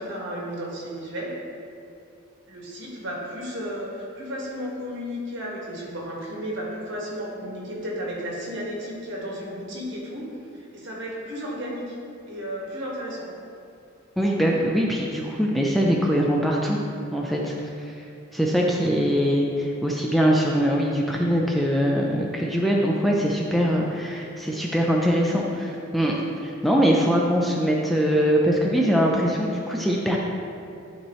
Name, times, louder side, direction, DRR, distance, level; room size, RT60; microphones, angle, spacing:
voice 1, 0.0-1.3 2.5-10.3 10.5-12.0 12.3-13.3, equal, 60° right, -4 dB, 1.6 m, -33 dB
voice 2, 14.2-16.8 17.1-17.5 17.9-18.0 18.3-30.2, equal, ahead, -2 dB, 0.5 m, -22 dB
11.5 x 4.5 x 3.1 m, 2.6 s
head